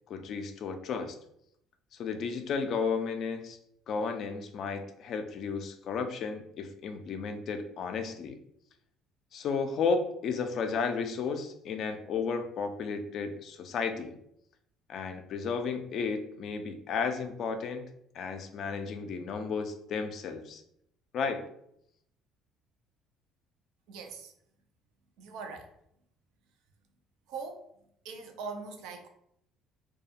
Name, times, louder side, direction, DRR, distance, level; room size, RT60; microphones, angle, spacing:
voice 1, 0.1-1.2 2.0-3.6 3.9-8.4 9.3-14.2 14.9-17.8 18.1-20.6 21.1-21.4, left 5 dB, 60° left, 7 dB, 0.4 m, -33 dB
voice 2, 23.9-24.3 25.2-25.7 27.3-27.7 28.0-29.1, right 4 dB, 70° right, 4 dB, 0.5 m, -41 dB
2.4 x 2.3 x 2.7 m, 0.74 s
hypercardioid pair, 65°, 0 cm